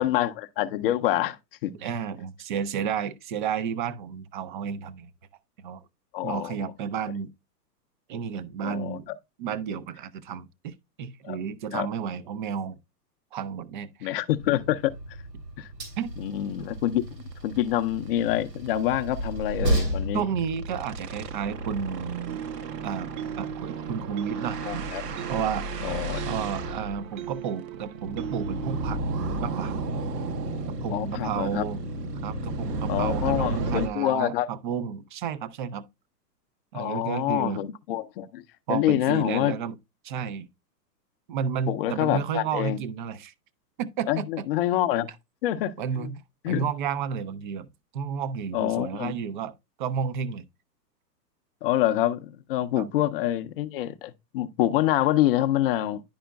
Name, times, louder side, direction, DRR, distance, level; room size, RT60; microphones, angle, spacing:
voice 1, 0.0-1.7 6.1-6.7 8.6-9.0 11.2-11.4 11.7-11.9 14.0-14.9 15.6-15.7 16.2-20.2 24.6-25.0 25.8-26.2 30.9-31.6 32.9-34.5 36.7-38.4 38.7-39.5 41.7-42.8 44.1-45.1 45.4-46.1 46.4-46.6 48.5-49.1 51.6-56.0, left 13 dB, 35° left, 0.5 m, -26 dB
voice 2, 1.7-5.1 5.6-5.8 6.2-7.3 8.1-9.0 9.4-10.7 11.0-12.8 13.3-14.2 16.0-16.1 20.1-22.4 22.8-23.1 23.3-24.9 25.3-25.7 26.2-29.1 29.4-29.8 30.7-31.8 32.2-35.8 36.7-37.6 38.7-39.8 40.0-40.5 41.3-43.3 43.8-44.5 45.8-47.7 47.9-49.5 49.8-50.4 52.8-52.9, right 7 dB, 35° right, 0.4 m, -32 dB
Train, 14.4-22.1, right 1 dB, 85° right, 3.1 m, -33 dB
sound 1, 17.2-17.3 17.7-17.8 18.1-18.2 18.5-18.7 20.0-33.9, right 2 dB, 70° right, 1.2 m, -33 dB
sound 2, 22.3-29.0, right 9 dB, 55° right, 0.8 m, -38 dB
10.5 x 5.0 x 2.2 m
hypercardioid pair, 120°, 50 cm